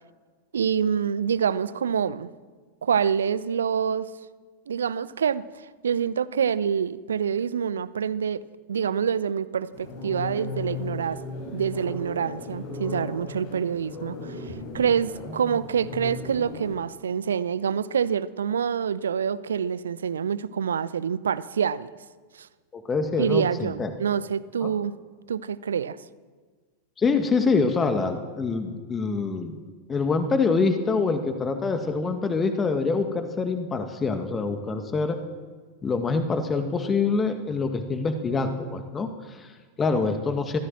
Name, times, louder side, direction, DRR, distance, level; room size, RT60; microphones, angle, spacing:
voice 1, 0.5-2.3 2.8-4.1 4.7-8.4 8.7-11.2 11.5-21.9 22.4-22.5 23.2-24.9 25.3-26.0, right 7 dB, 65° right, 17 dB, 0.9 m, -26 dB
sound 1, 9.7-16.8, left 3 dB, 50° left, 5.7 m, -36 dB
voice 2, 22.7-23.9 24.6-24.7 27.0-29.6 29.9-35.2 35.8-40.6, left 4 dB, 20° left, 7 dB, 2.0 m, -25 dB
23.5 x 15.5 x 7.6 m, 1.4 s
figure-of-eight pair, 90°, 0 cm